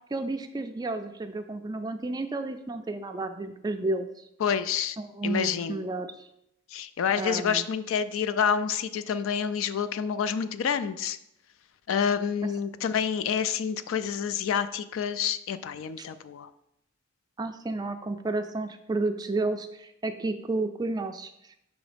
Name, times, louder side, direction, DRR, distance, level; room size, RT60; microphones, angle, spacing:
voice 1, 0.1-4.1 5.0-6.3 7.1-7.7 12.4-12.5 17.4-21.3, right 2 dB, 20° right, 8 dB, 0.3 m, -31 dB
voice 2, 4.4-5.0 5.2-5.9 6.7-11.2 11.9-16.5, left 7 dB, 65° left, 13 dB, 0.3 m, -28 dB
6.1 x 3.1 x 5.0 m, 0.80 s
head